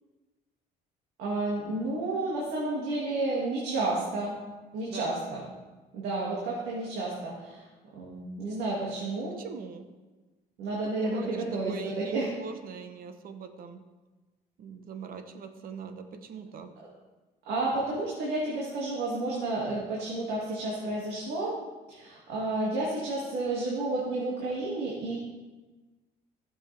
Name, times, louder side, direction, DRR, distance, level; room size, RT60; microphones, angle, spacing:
voice 1, 1.2-4.4 4.7-5.4 5.9-7.6 8.0-9.4 10.6-12.3 16.8-16.9 17.5-21.6 21.9-25.2, right 2 dB, 85° right, -5 dB, 2.3 m, -31 dB
voice 2, 9.3-9.9 10.8-13.8 14.6-16.7, right 6 dB, 60° right, 8 dB, 1.1 m, -42 dB
15.5 x 7.2 x 3.4 m, 1.2 s
cardioid pair, 110°, 17 cm